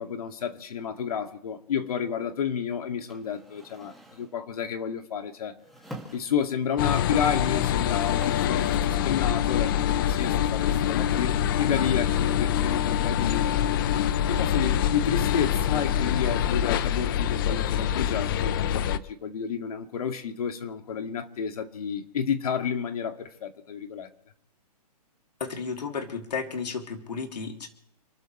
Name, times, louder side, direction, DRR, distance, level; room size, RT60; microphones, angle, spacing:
voice 1, 0.0-5.6 6.1-13.5 14.3-24.1, left 7 dB, 65° left, 2.4 m, -31 dB
sound 1, 3.1-4.4 5.6-6.7 7.6-7.7 7.9-9.2 10.1-11.6 13.2-13.8, right 1 dB, ahead, 2.3 m, -47 dB
sound 2, 6.8-19.0, left 10 dB, 35° left, 0.7 m, -25 dB
voice 2, 25.4-27.7, left 5 dB, 85° left, 3.3 m, -33 dB
29.5 x 13.5 x 3.3 m
hypercardioid pair, 155°, 20 cm